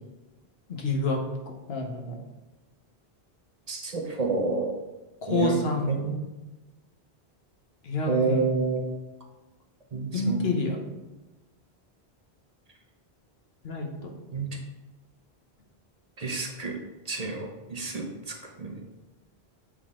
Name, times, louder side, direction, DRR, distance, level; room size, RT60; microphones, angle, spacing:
voice 1, 0.7-2.2 5.3-6.0 7.8-8.4 10.1-10.8 13.6-14.1, left 2 dB, 75° left, 1 dB, 1.3 m, -28 dB
voice 2, 3.7-4.8 5.3-5.6 5.9-6.2 8.1-8.9 9.9-10.6 14.3-14.5 16.2-16.8 17.1-18.8, right 4 dB, 40° right, 2 dB, 0.8 m, -29 dB
7.9 x 3.9 x 3.7 m, 1.1 s
omnidirectional pair, 1.1 m